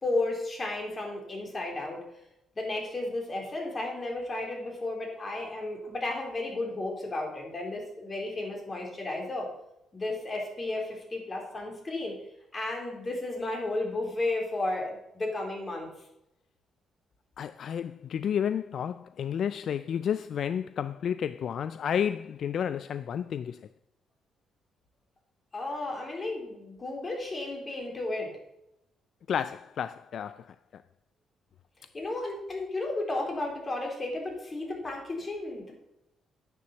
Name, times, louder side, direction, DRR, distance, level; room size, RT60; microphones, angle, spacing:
voice 1, 0.0-2.0 2.6-9.5 9.9-12.2 12.5-15.9 25.5-28.3 31.9-35.8, left 2 dB, 30° left, 3.8 m, -33 dB
voice 2, 17.4-23.6 29.3-30.5 30.7-30.8, left 8 dB, 60° left, 0.3 m, -31 dB
9.7 x 6.8 x 7.2 m
cardioid pair, 90°, 0 cm